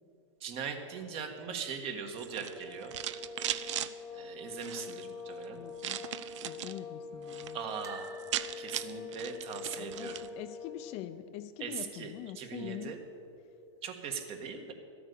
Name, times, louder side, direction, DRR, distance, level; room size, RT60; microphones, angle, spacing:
voice 1, 0.4-2.9 3.5-3.8 4.1-5.6 7.5-8.2 8.6-10.2 11.6-13.0 13.8-14.7, right 6 dB, 40° right, 5 dB, 1.5 m, -40 dB
sound 1, 2.1-3.9 4.5-5.0 5.8-6.8 7.1-7.5 7.8-7.9 8.1-10.3, right 12 dB, 75° right, 0.6 m, -38 dB
sound 2, 2.3-11.0, left 5 dB, ahead, 1.2 m, -45 dB
voice 2, 5.5-6.1 6.4-7.6 9.8-12.9, left 12 dB, 40° left, 10 dB, 0.6 m, -44 dB
sound 3, 7.8-10.9 11.1-11.4 11.6-11.7 12.9-13.5 14.0-14.1, right 3 dB, 20° right, 0.8 m, -54 dB
13.5 x 8.7 x 6.8 m, 2.7 s
hypercardioid pair, 130°, 16 cm